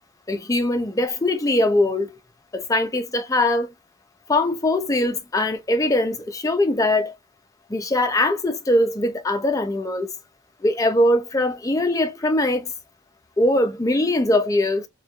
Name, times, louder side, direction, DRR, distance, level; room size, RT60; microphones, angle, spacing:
voice 1, 0.3-2.1 2.5-3.7 4.3-7.1 7.7-10.1 10.6-12.7 13.4-14.9, left 1 dB, 15° left, 0.4 m, -21 dB
3.0 x 2.3 x 2.3 m
head